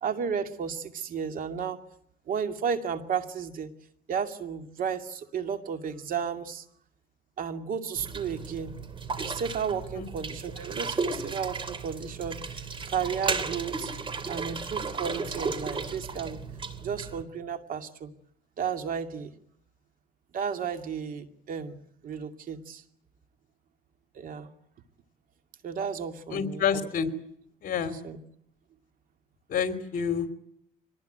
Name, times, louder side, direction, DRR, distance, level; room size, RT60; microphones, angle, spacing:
voice 1, 0.0-1.8 2.3-3.7 4.1-6.6 7.4-8.8 9.2-13.9 14.3-16.4 16.8-18.1 18.6-19.3 20.3-21.7 22.0-22.8 24.1-24.5 25.6-26.9 27.9-28.2, right 7 dB, 55° right, 7 dB, 2.5 m, -33 dB
sound 1, 8.0-17.2, right 4 dB, 30° right, 2.8 m, -34 dB
voice 2, 26.3-27.1 27.6-27.9 29.5-30.4, left 7 dB, 55° left, 9 dB, 3.2 m, -28 dB
25.0 x 19.5 x 9.2 m, 0.70 s
cardioid pair, 110°, 17 cm